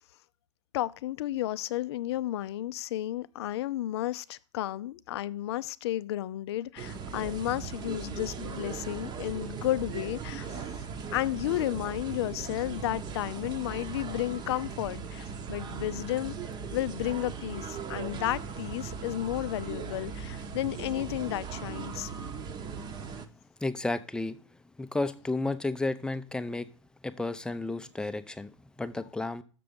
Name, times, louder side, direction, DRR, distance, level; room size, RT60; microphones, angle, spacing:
voice 1, 0.7-10.8 11.1-16.4 16.7-22.1, left 14 dB, 55° left, 0.5 m, -32 dB
sound 1, 6.8-23.3, right 6 dB, 25° right, 0.9 m, -38 dB
voice 2, 23.6-24.4 24.8-26.7 27.0-28.5 28.8-29.4, left 2 dB, 5° left, 0.5 m, -32 dB
6.8 x 6.7 x 5.1 m
figure-of-eight pair, 100°, 16 cm